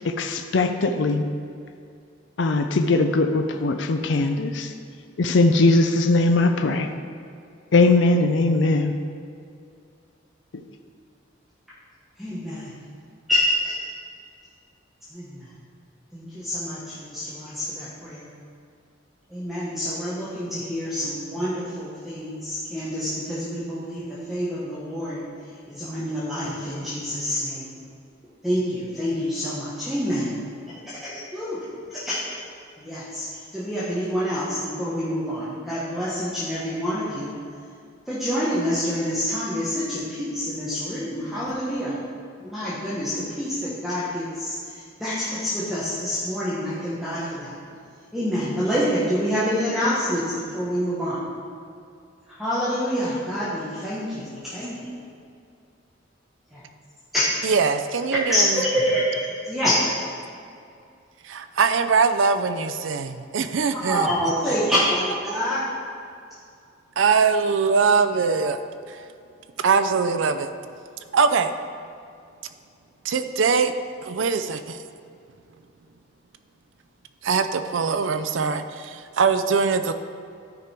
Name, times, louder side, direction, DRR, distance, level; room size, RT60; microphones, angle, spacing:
voice 1, 0.0-1.3 2.4-4.7 5.2-6.9 7.7-8.9, left 2 dB, 65° left, 6 dB, 0.5 m, -20 dB
voice 2, 12.2-12.7 13.6-13.9 15.1-15.4 16.1-18.3 19.3-25.2 25.7-27.7 28.4-30.3 31.3-31.5 31.9-32.3 32.8-33.3 33.5-37.3 38.1-42.0 42.4-44.5 45.0-47.5 48.1-51.2 52.4-54.8 56.5-56.6 57.1-57.2 58.3-58.4 58.7-59.0 59.5-59.7 63.7-65.6, equal, ahead, -11 dB, 1.4 m, -27 dB
voice 3, 57.4-58.7 61.2-64.1 67.0-68.6 68.9-69.0 69.6-70.5 71.1-71.5 73.0-73.7 74.0-74.8 77.2-79.9, right 5 dB, 80° right, 10 dB, 0.5 m, -22 dB
12.0 x 5.2 x 4.5 m, 2.4 s
head